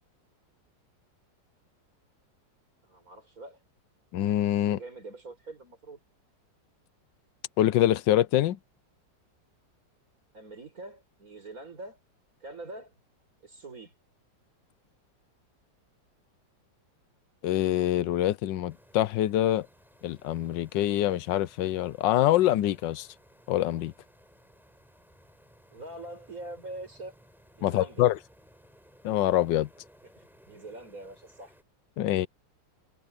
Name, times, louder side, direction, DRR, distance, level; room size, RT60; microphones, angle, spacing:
voice 1, 2.8-3.6 4.7-6.0 10.3-12.0 12.4-12.9 13.4-13.9 25.7-27.1 27.6-28.1 30.0-31.5, right 2 dB, 50° right, 6.0 m, -44 dB
voice 2, 4.1-4.8 7.6-8.6 17.4-19.7 20.0-23.1 23.5-23.9 27.6-28.2 29.0-29.7 32.0-32.3, left 13 dB, 85° left, 1.3 m, -25 dB
sound 1, 18.7-31.6, equal, ahead, 5.4 m, -59 dB
omnidirectional pair, 2.0 m